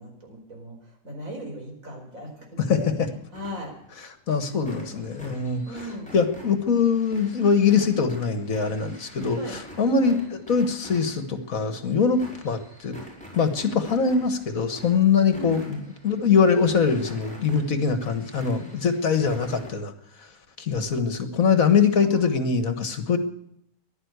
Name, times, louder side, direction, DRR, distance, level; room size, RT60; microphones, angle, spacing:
voice 1, 0.0-2.9 3.3-3.7 4.5-5.3 5.6-6.1 9.3-9.6 10.0-10.2 15.3-15.5 22.0-22.4, equal, 60° right, 1 dB, 5.0 m, -39 dB
sound 1, 3.3-4.0 4.3-19.7, equal, 5° left, 5.4 m, -46 dB
voice 2, 4.3-5.6 6.1-10.2 10.5-13.1 13.3-19.9 20.6-23.2, left 5 dB, 65° left, 9 dB, 1.8 m, -23 dB
15.5 x 11.0 x 8.0 m, 0.73 s
omnidirectional pair, 1.6 m